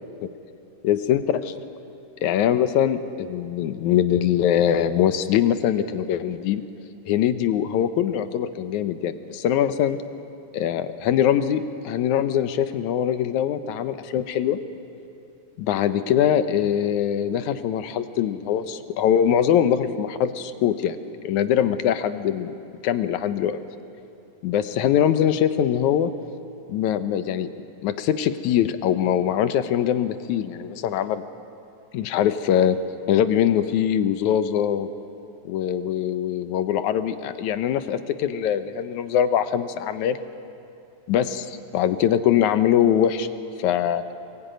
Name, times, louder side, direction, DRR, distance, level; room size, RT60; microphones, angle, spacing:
voice 1, 0.8-1.5 2.2-6.7 7.1-10.0 10.5-14.6 15.6-21.0 21.2-22.5 22.8-23.6 24.4-26.1 26.7-27.5 27.8-31.2 31.9-32.8 33.1-34.9 35.5-40.2 41.1-43.3 43.6-44.0, left 10 dB, 70° left, 10 dB, 2.1 m, -22 dB
23.5 x 20.5 x 9.2 m, 2.7 s
omnidirectional pair, 3.7 m